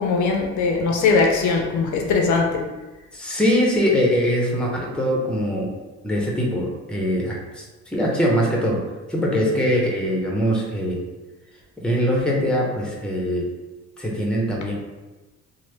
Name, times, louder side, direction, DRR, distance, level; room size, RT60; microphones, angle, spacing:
voice 1, 0.0-2.7, left 4 dB, 75° left, 1 dB, 0.6 m, -20 dB
voice 2, 3.1-5.7 6.0-8.8 9.1-11.0 11.8-13.5 14.0-14.7, equal, 5° left, -2 dB, 0.7 m, -22 dB
3.2 x 2.1 x 3.1 m, 1.2 s
cardioid pair, 90°, 30 cm